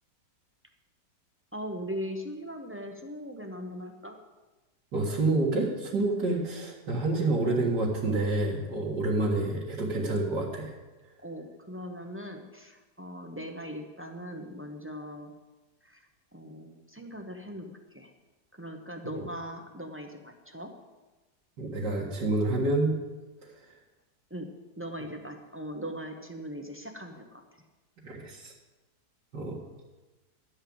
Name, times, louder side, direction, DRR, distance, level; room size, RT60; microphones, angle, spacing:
voice 1, 1.5-4.2 11.2-15.3 15.8-18.1 18.5-20.7 24.3-27.4, equal, 15° right, 3 dB, 0.5 m, -40 dB
voice 2, 4.9-10.7 19.1-19.2 21.6-22.9 23.4-23.5 28.0-28.5 29.3-29.6, right 2 dB, 75° right, -7 dB, 2.5 m, -28 dB
12.0 x 5.6 x 8.7 m, 1.2 s
omnidirectional pair, 1.8 m